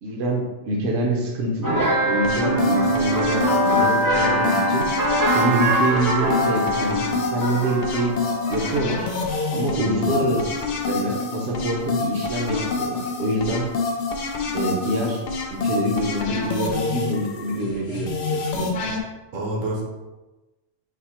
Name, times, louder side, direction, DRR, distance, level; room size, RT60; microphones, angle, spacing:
voice 1, 0.0-4.9 5.3-9.1 9.5-13.7 14.5-15.2 15.5-18.9, right 1 dB, 65° right, -1 dB, 0.9 m, -26 dB
sound 1, 1.6-9.3, right 1 dB, 20° right, 0.6 m, -23 dB
sound 2, 2.2-19.0, left 4 dB, 65° left, 0.5 m, -27 dB
voice 2, 9.7-10.4 19.3-19.8, right 2 dB, 80° right, -3 dB, 1.3 m, -28 dB
4.2 x 2.1 x 4.2 m, 1.1 s
omnidirectional pair, 1.3 m